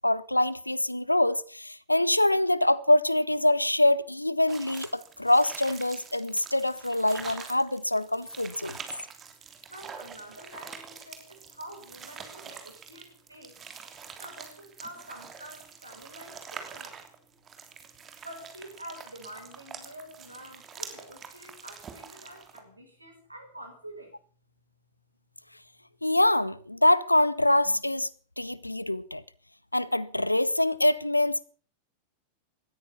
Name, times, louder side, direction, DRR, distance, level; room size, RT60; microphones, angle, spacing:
voice 1, 0.0-8.8 26.0-28.1 28.4-29.2 29.7-31.4, left 1 dB, 85° left, 0.8 m, -24 dB
sound 1, 4.5-22.6, right 6 dB, 25° right, 3.1 m, -45 dB
voice 2, 9.7-13.6 14.2-17.0 18.2-24.1, right 1 dB, 85° right, 5.6 m, -47 dB
18.0 x 13.5 x 5.8 m
figure-of-eight pair, 90°, 0 cm